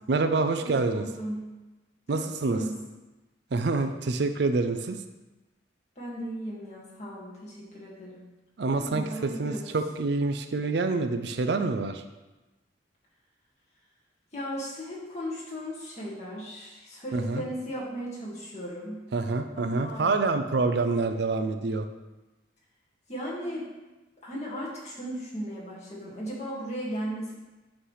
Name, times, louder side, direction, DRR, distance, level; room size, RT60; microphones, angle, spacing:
voice 1, 0.1-1.0 2.1-2.6 3.5-5.0 8.6-12.0 17.1-17.4 19.1-21.9, right 3 dB, 60° right, 8 dB, 0.4 m, -27 dB
voice 2, 0.6-1.5 2.1-2.8 6.0-8.2 8.6-9.7 14.3-19.0 19.5-20.3 23.1-23.7 24.2-27.3, equal, 35° left, -5 dB, 1.9 m, -36 dB
8.4 x 3.3 x 5.6 m, 1.1 s
head